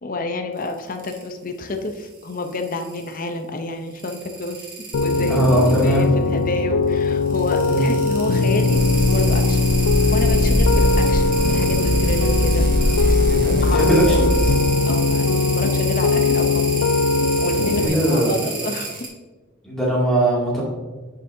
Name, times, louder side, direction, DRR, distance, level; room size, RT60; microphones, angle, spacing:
voice 1, 0.0-4.6 5.0-9.6 10.1-13.2 13.6-16.8 17.4-19.1, left 2 dB, 45° left, 5 dB, 0.7 m, -29 dB
sound 1, 0.6-1.3 1.9-3.2 3.9-6.0 7.1-19.1, right 5 dB, 45° right, 2.1 m, -32 dB
Piano, 4.9-17.9, left 3 dB, 90° left, 0.4 m, -20 dB
voice 2, 5.3-6.0 7.7-7.9 13.3-14.3 17.8-18.4 19.6-20.6, right 1 dB, 5° left, -6 dB, 2.4 m, -20 dB
sound 2, 8.7-14.5, equal, 65° right, 2.3 m, -21 dB
10.5 x 6.5 x 2.7 m, 1.2 s
head